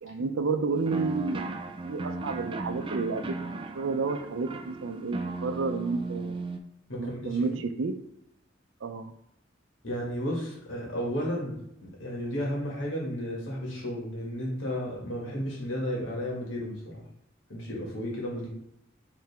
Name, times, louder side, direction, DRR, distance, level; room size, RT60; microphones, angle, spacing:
voice 1, 0.0-3.3 3.7-6.5 7.0-7.9 8.8-9.1, right 4 dB, 85° right, 9 dB, 0.5 m, -31 dB
sound 1, 0.9-6.6, right 3 dB, 25° right, 0.3 m, -36 dB
voice 2, 6.9-7.6 9.8-17.0 17.5-18.5, equal, 85° left, -3 dB, 1.8 m, -33 dB
4.7 x 3.3 x 3.4 m, 0.80 s
head